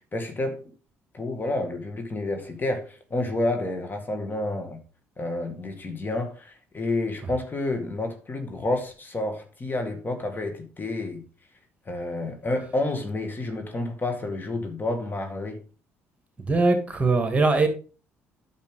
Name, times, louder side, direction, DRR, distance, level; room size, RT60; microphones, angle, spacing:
voice 1, 0.1-0.6 1.1-4.8 5.2-11.2 11.9-15.6, left 2 dB, 30° left, 2.1 m, -29 dB
voice 2, 16.5-17.7, right 3 dB, 20° right, 2.5 m, -21 dB
9.1 x 6.7 x 3.9 m
hypercardioid pair, 55°, 7 cm